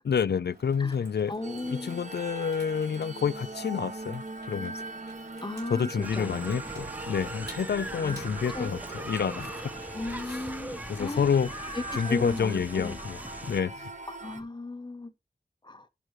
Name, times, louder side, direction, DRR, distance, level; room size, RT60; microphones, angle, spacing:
voice 1, 0.0-1.3 1.6-4.9 5.7-9.6 10.2-10.5 10.9-11.6 11.9-13.2 13.4-13.7, left 7 dB, 80° left, 0.4 m, -29 dB
Water tap faucet / Sink (filling or washing), 0.5-11.7, right 2 dB, 80° right, 4.4 m, -53 dB
voice 2, 1.3-2.1 5.4-6.4 7.9-8.2 8.5-8.7 9.9-11.4 11.7-13.0 14.1-15.1 15.6-15.9, left 2 dB, 25° left, 1.0 m, -35 dB
sound 1, 1.4-14.4, right 2 dB, 45° right, 1.4 m, -41 dB
sound 2, 6.0-13.6, right 1 dB, 10° right, 0.9 m, -41 dB
11.0 x 6.1 x 3.1 m
wide cardioid pair, 45°, 17 cm